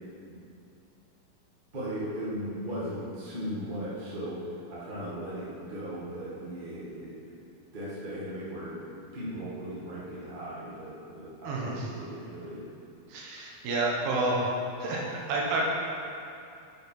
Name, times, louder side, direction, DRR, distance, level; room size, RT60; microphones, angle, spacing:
voice 1, 1.7-7.1 7.7-8.8 9.1-12.7, equal, 40° right, -9 dB, 0.7 m, -37 dB
voice 2, 11.4-11.9 13.1-14.4 14.8-15.6, right 2 dB, 85° right, -3 dB, 3.0 m, -29 dB
6.7 x 6.6 x 4.4 m, 2.6 s
omnidirectional pair, 4.2 m